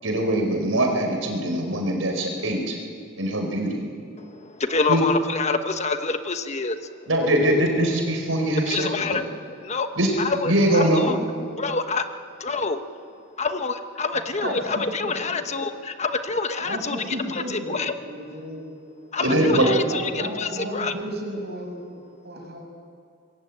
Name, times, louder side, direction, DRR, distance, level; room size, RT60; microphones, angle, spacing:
voice 1, 0.0-2.8 3.2-3.8 4.9-5.0 7.1-9.2 10.0-10.1 10.4-11.1 19.2-19.7, right 1 dB, 80° right, 3 dB, 4.9 m, -22 dB
voice 2, 4.2-6.9 8.7-9.2 9.6-9.9 10.2-11.2 11.6-12.1 12.4-12.8 13.4-17.9 19.1-20.9, left 4 dB, 35° left, 8 dB, 1.1 m, -27 dB
voice 3, 14.4-15.1 16.6-17.8 18.0-18.6 19.2-22.6, right 1 dB, 55° right, 1 dB, 6.3 m, -33 dB
25.0 x 21.5 x 8.8 m, 2.2 s
head